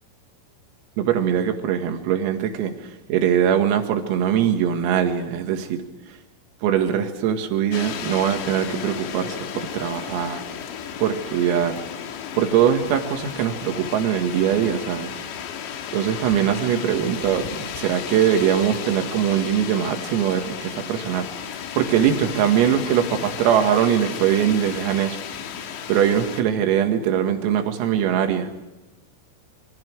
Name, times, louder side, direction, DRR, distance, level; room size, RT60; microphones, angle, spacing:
voice 1, 1.0-2.8 3.1-5.8 6.6-10.4 11.0-11.8 12.4-15.1 15.9-21.3 21.8-25.2 25.9-28.5, right 9 dB, 80° right, 5 dB, 4.6 m, -22 dB
sound 1, 7.7-26.4, left 8 dB, 65° left, 3.8 m, -34 dB
27.0 x 25.5 x 4.8 m, 1.1 s
omnidirectional pair, 6.0 m